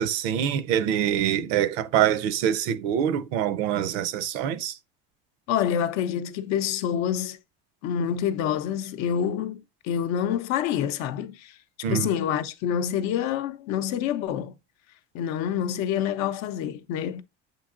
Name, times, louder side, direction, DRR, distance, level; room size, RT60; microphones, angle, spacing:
voice 1, 0.0-4.8 11.8-12.1, right 9 dB, 85° right, 0.6 m, -25 dB
voice 2, 5.5-7.4 7.8-11.5 11.9-14.5 15.1-17.2, left 9 dB, 65° left, 0.6 m, -27 dB
7.3 x 2.8 x 2.4 m
supercardioid pair, 115°, 30 cm